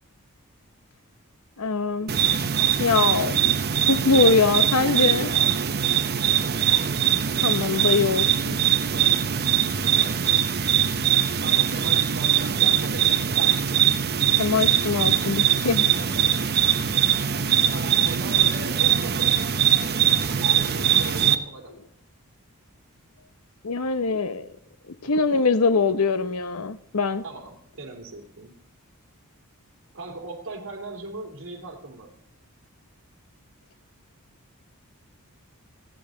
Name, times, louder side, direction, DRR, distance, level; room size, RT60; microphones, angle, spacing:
voice 1, 1.6-2.4 2.8-5.3 7.4-8.6 14.4-15.9 23.6-24.5 24.9-27.2, left 4 dB, 70° left, 0.8 m, -23 dB
sound 1, 2.1-21.4, right 9 dB, 45° right, 0.8 m, -22 dB
voice 2, 4.9-6.7 8.9-10.5 11.4-13.2 17.7-19.4 20.5-21.8 25.0-25.7 27.2-28.6 29.9-32.1, right 2 dB, 60° right, 3.0 m, -40 dB
29.5 x 10.5 x 3.8 m
head